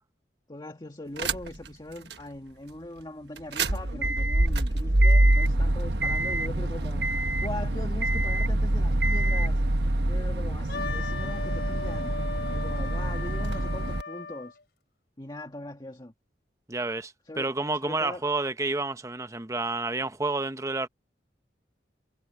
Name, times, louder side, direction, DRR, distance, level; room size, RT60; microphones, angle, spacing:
voice 1, 0.5-7.1 7.4-9.6 10.1-12.1 12.5-14.6 15.2-16.1 17.3-17.5 17.8-18.2, left 1 dB, 25° left, 1.8 m, -40 dB
sound 1, 1.2-1.7 2.1-2.2 3.4-14.0, right 1 dB, 75° right, 1.3 m, -25 dB
Wind instrument woodwind instrument, 10.7-14.5, left 4 dB, 65° left, 4.5 m, -37 dB
voice 2, 16.7-20.9, right 3 dB, 20° right, 1.0 m, -30 dB
head